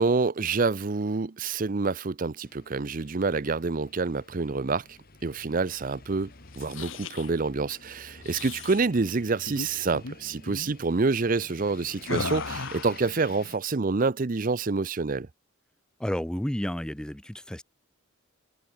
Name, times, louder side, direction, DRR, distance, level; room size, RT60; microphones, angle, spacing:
voice 1, 0.0-15.3, right 4 dB, 40° right, 0.6 m, -27 dB
sound 1, 2.4-13.6, left 3 dB, 45° left, 2.7 m, -50 dB
sound 2, 6.4-7.3 8.2-8.8 9.4-9.7 9.9-10.2 10.5-10.7 12.0-13.0, left 3 dB, 70° left, 1.7 m, -35 dB
voice 2, 16.0-17.6, equal, 5° left, 0.4 m, -31 dB
head